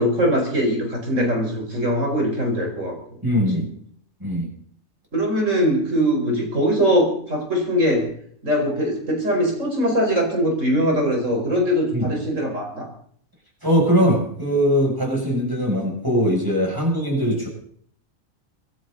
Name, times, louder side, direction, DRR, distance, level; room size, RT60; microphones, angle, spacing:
voice 1, 0.0-3.2 3.5-3.6 5.1-8.1 8.4-12.9, equal, 70° right, 2 dB, 5.5 m, -21 dB
voice 2, 3.2-3.7 4.2-4.5 11.9-12.1 13.6-17.5, equal, 15° right, -1 dB, 7.3 m, -21 dB
25.0 x 12.5 x 4.1 m, 0.62 s
omnidirectional pair, 1.4 m